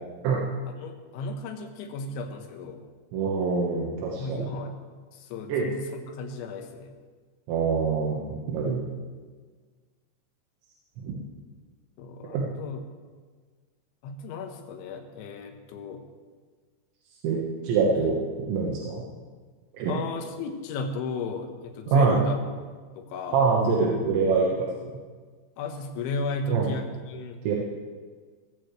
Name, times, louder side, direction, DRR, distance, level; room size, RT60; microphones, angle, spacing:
voice 1, 0.7-2.8 4.2-4.8 5.1-6.9 12.0-12.8 14.0-16.0 18.0-18.1 19.9-22.4 23.0-23.5 25.6-27.4, left 2 dB, 85° left, 5 dB, 3.6 m, -34 dB
voice 2, 3.1-4.5 5.5-5.7 7.5-8.8 11.0-11.3 12.3-12.5 17.2-18.2 18.5-19.0 19.7-19.9 21.9-22.2 23.3-24.5 26.5-26.7 27.5-27.6, right 5 dB, 80° right, -3 dB, 3.7 m, -24 dB
22.0 x 14.0 x 3.3 m, 1.5 s
omnidirectional pair, 5.2 m